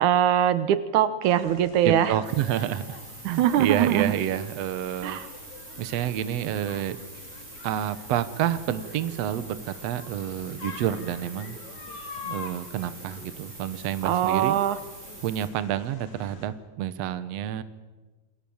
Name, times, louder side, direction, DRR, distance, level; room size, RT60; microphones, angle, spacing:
voice 1, 0.0-2.1 3.2-4.2 5.0-5.3 14.0-14.8, right 10 dB, 85° right, 13 dB, 2.4 m, -22 dB
sound 1, 1.2-16.5, left 5 dB, 70° left, 3.9 m, -45 dB
voice 2, 1.8-3.0 3.3-5.2 5.8-7.0 7.6-11.6 12.2-14.6 15.2-17.6, right 11 dB, 65° right, 13 dB, 2.1 m, -29 dB
sound 2, 2.2-15.5, right 3 dB, 25° right, 4.1 m, -45 dB
28.0 x 22.0 x 7.2 m, 1.3 s
omnidirectional pair, 3.4 m